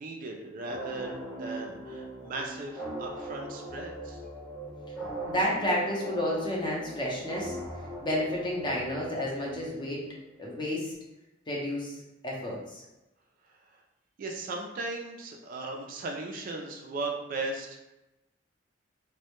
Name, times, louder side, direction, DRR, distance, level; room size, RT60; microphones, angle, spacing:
voice 1, 0.0-4.2 14.2-17.8, right 3 dB, 45° right, 1 dB, 0.3 m, -37 dB
sound 1, 0.7-10.1, right 1 dB, 5° right, 0.8 m, -40 dB
voice 2, 5.3-7.6 8.0-10.1 10.4-10.9 11.5-12.8, left 1 dB, 25° left, -3 dB, 0.5 m, -31 dB
2.1 x 2.0 x 2.9 m, 0.97 s
head